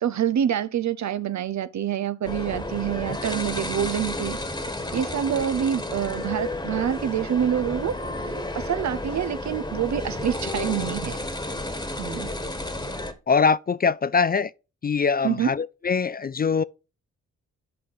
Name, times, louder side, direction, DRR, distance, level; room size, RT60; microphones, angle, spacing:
voice 1, 0.0-4.4 4.9-11.2 12.0-12.3 15.2-15.5, right 9 dB, 65° right, 0.7 m, -26 dB
sound 1, 2.2-13.1, left 1 dB, 15° left, 1.4 m, -32 dB
voice 2, 13.3-14.5 14.8-16.6, left 5 dB, 30° left, 0.4 m, -22 dB
8.9 x 5.4 x 4.6 m
cardioid pair, 60°, 30 cm